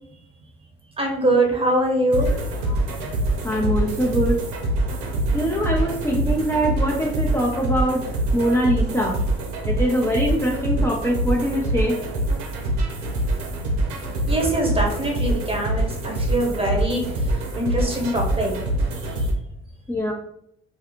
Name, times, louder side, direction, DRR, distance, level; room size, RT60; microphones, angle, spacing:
voice 1, 1.0-2.3 14.3-17.0 17.6-18.5, right 1 dB, 20° right, 0 dB, 1.1 m, -22 dB
sound 1, 2.1-19.3, right 1 dB, 80° right, 0.6 m, -25 dB
voice 2, 3.4-4.4 5.3-9.2 9.7-11.9 19.9-20.1, equal, 10° left, -3 dB, 0.5 m, -23 dB
2.6 x 2.3 x 2.8 m, 0.74 s
hypercardioid pair, 50°, 31 cm